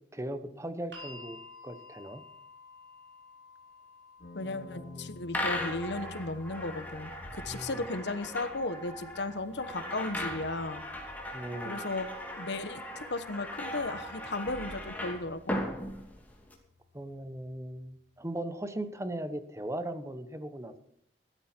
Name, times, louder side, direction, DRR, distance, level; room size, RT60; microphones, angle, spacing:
voice 1, 0.1-1.4 1.6-2.2 4.4-5.3 7.5-7.9 11.3-11.9 16.9-20.8, right 1 dB, 15° right, 11 dB, 1.1 m, -38 dB
sound 1, 0.9-13.0 14.1-14.2, left 2 dB, 85° right, 4.4 m, -55 dB
sound 2, 4.2-18.2, left 3 dB, 60° left, 2.3 m, -53 dB
voice 2, 4.3-10.8 11.6-12.1 12.4-15.6, left 2 dB, 80° left, 12 dB, 1.1 m, -35 dB
sound 3, 5.3-16.5, left 1 dB, 10° left, 2.7 m, -38 dB
15.5 x 13.0 x 4.5 m, 0.70 s
head